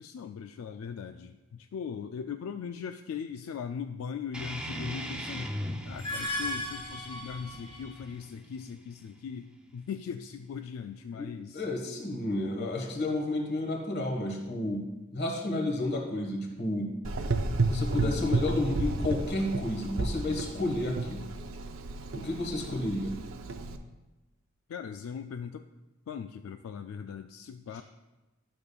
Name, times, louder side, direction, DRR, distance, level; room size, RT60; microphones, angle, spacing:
voice 1, 0.0-5.5 5.8-11.6 18.0-18.3 24.7-25.6 26.1-27.8, left 7 dB, 80° left, 8 dB, 0.3 m, -39 dB
sound 1, 4.3-9.4, equal, 5° right, 0.5 m, -40 dB
sound 2, 5.8-8.1, left 1 dB, 25° left, 1.7 m, -36 dB
voice 2, 11.5-14.8 15.1-16.9 17.7-21.2 22.1-23.2 27.7-27.8, left 1 dB, 50° left, 1 dB, 1.4 m, -31 dB
Gurgling / Engine, 17.0-23.8, right 2 dB, 70° right, 0.5 m, -32 dB
12.0 x 6.7 x 2.3 m, 1.1 s
head